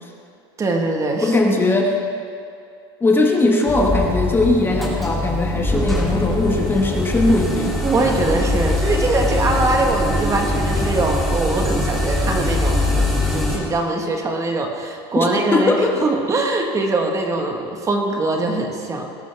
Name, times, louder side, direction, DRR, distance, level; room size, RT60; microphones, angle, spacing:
voice 1, 0.6-1.4 7.8-15.7 16.0-19.1, right 2 dB, 25° right, 3 dB, 1.5 m, -22 dB
voice 2, 1.2-2.0 3.0-7.8 15.1-16.1, left 2 dB, 15° left, 1 dB, 1.4 m, -19 dB
sound 1, 3.7-13.6, left 1 dB, ahead, 3.0 m, -22 dB
19.0 x 11.5 x 3.5 m, 2.4 s
supercardioid pair, 115°, 13 cm